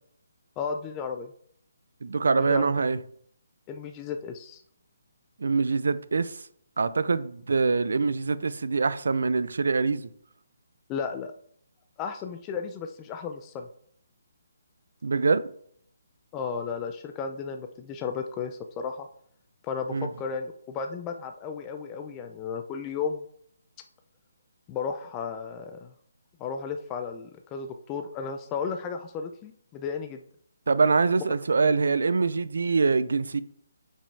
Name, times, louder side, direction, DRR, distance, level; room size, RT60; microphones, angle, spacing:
voice 1, 0.6-1.3 2.4-2.7 3.7-4.6 10.9-11.3 12.0-13.7 16.3-19.1 19.6-23.2 24.7-25.9 26.4-30.2, left 6 dB, 20° left, 0.5 m, -34 dB
voice 2, 2.0-3.0 5.4-6.4 6.8-10.1 15.0-15.5 19.9-20.1 30.7-33.4, right 4 dB, 75° right, 0.5 m, -24 dB
8.6 x 5.4 x 3.3 m
hypercardioid pair, 155°, 0 cm